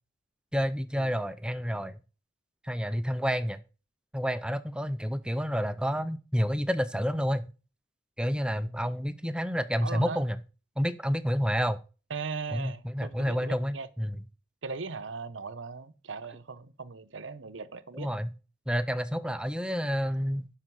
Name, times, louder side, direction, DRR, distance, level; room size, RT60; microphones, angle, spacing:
voice 1, 0.5-2.0 2.6-3.6 4.1-7.5 8.2-10.4 10.8-11.8 12.5-14.2 17.9-18.3 18.7-20.5, equal, 5° right, 0.7 m, -29 dB
voice 2, 9.8-10.2 12.1-13.9 14.6-18.1, right 4 dB, 85° right, 1.0 m, -38 dB
11.5 x 6.6 x 4.7 m
head